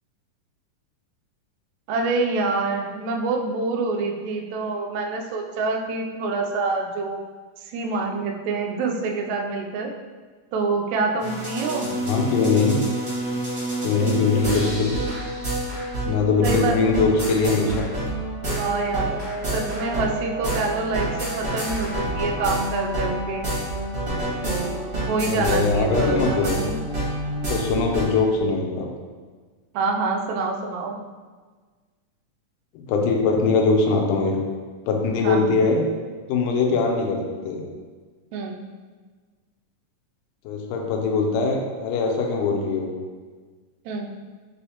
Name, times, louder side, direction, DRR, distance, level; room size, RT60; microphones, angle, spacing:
voice 1, 1.9-7.2 7.6-9.9 10.5-11.9 16.4-17.0 18.5-19.2 19.5-23.5 24.4-24.8 25.1-26.8 29.7-31.0 35.2-35.6 38.3-38.6 43.8-44.1, right 3 dB, 85° right, 2 dB, 1.6 m, -26 dB
sound 1, 11.2-28.0, right 1 dB, 50° right, 0.7 m, -28 dB
voice 2, 12.1-12.8 13.8-15.0 16.0-17.9 25.2-26.6 27.5-28.9 32.8-34.4 34.9-35.9 36.3-37.6 40.5-42.9, left 4 dB, 80° left, 1 dB, 2.1 m, -21 dB
5.3 x 3.1 x 2.8 m, 1.4 s
omnidirectional pair, 3.9 m